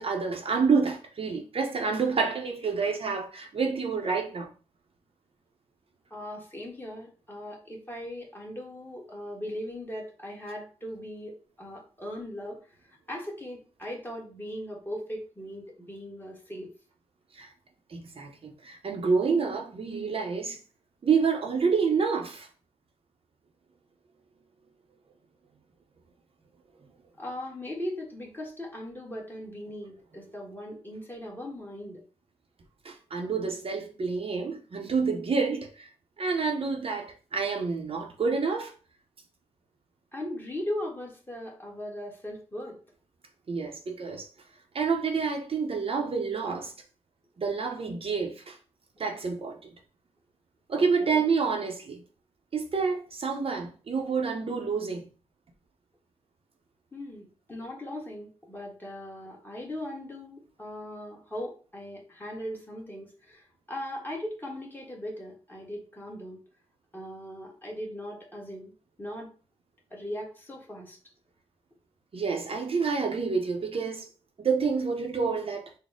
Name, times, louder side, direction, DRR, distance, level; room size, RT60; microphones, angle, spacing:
voice 1, 0.0-4.5 17.3-17.5 17.9-20.6 21.0-22.5 32.8-35.9 36.2-38.7 43.5-44.3 44.7-46.7 47.4-48.6 49.0-49.6 50.7-52.0 52.5-55.1 72.1-74.1 74.4-75.7, right 5 dB, 50° right, 0.6 m, -28 dB
voice 2, 6.1-12.6 13.1-16.7 27.2-32.0 40.1-42.8 50.8-51.3 56.9-66.4 66.9-68.7 69.0-69.3 69.9-71.0, left 1 dB, 15° left, 1.3 m, -39 dB
4.0 x 2.1 x 3.6 m
cardioid pair, 85°, 12 cm